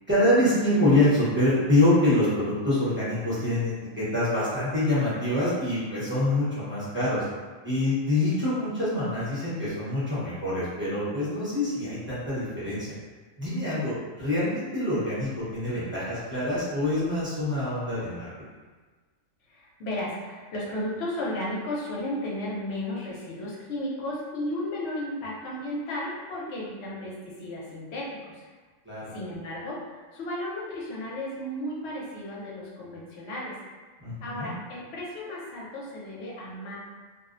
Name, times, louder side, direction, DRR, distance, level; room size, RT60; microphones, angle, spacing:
voice 1, 0.1-7.2 7.6-13.0 13.4-18.3 28.8-29.1 34.0-34.5, left 1 dB, 10° right, -12 dB, 0.7 m, -25 dB
voice 2, 19.5-28.4 29.1-33.6 34.2-36.8, left 1 dB, 60° left, -5 dB, 0.9 m, -34 dB
2.6 x 2.0 x 2.4 m, 1.4 s
omnidirectional pair, 1.3 m